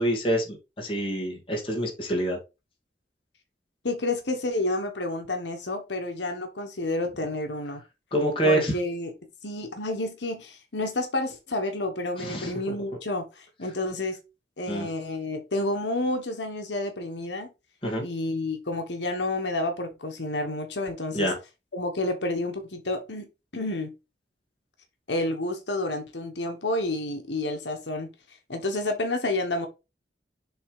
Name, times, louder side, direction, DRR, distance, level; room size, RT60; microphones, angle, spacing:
voice 1, 0.0-2.4 8.1-8.7 12.2-12.5 14.7-14.9 17.8-18.0 21.1-21.4, right 1 dB, 30° left, 2.3 m, -26 dB
voice 2, 3.8-7.8 8.4-9.1 9.4-14.2 14.6-17.5 18.0-21.3 21.7-23.3 23.5-23.9 25.1-28.1 28.5-29.7, left 2 dB, 85° left, 1.3 m, -30 dB
7.0 x 3.6 x 4.9 m
head